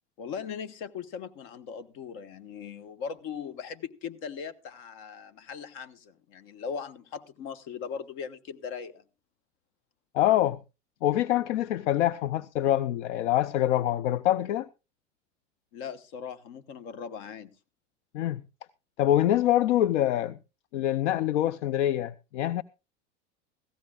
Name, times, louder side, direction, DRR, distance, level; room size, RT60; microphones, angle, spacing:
voice 1, 0.2-9.0 15.7-17.5, left 6 dB, 55° left, 1.2 m, -39 dB
voice 2, 10.1-10.6 11.0-14.7 18.1-18.4 19.0-20.4 20.7-22.6, left 12 dB, 75° left, 0.6 m, -25 dB
17.5 x 15.0 x 2.4 m
hypercardioid pair, 95°, 36 cm